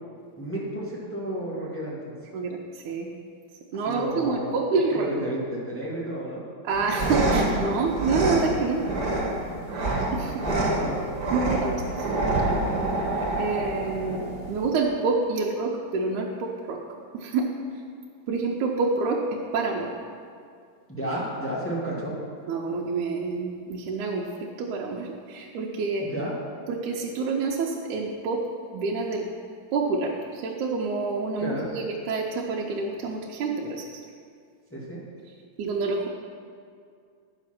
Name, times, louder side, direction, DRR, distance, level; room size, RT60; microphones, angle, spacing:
voice 1, 0.4-2.2 3.8-4.6 4.9-6.4 10.2-11.1 13.8-14.2 20.9-22.1 26.0-26.3 31.4-31.7 34.7-35.0, right 1 dB, 10° left, -6 dB, 0.9 m, -32 dB
voice 2, 2.3-3.1 3.7-5.1 6.6-8.8 10.1-10.3 11.3-12.6 13.4-14.2 14.5-16.8 17.1-17.5 18.3-19.2 19.5-19.9 22.5-26.1 26.7-28.4 28.7-29.3 29.7-33.9 35.6-36.1, right 4 dB, 85° right, -2 dB, 2.2 m, -27 dB
sound 1, 6.7-14.7, right 2 dB, 40° right, 1.6 m, -27 dB
9.8 x 6.4 x 5.9 m, 2.3 s
omnidirectional pair, 3.4 m